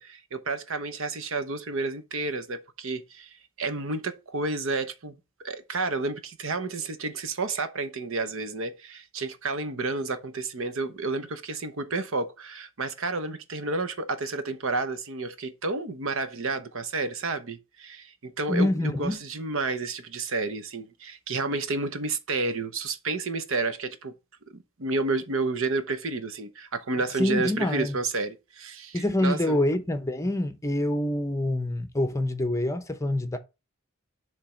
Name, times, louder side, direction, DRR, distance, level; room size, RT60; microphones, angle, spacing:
voice 1, 0.0-24.1 24.5-29.6, right 3 dB, 60° right, 0.9 m, -31 dB
voice 2, 18.5-19.2 27.2-28.0 28.9-33.4, left 1 dB, 15° left, 0.7 m, -26 dB
7.4 x 3.4 x 5.0 m
head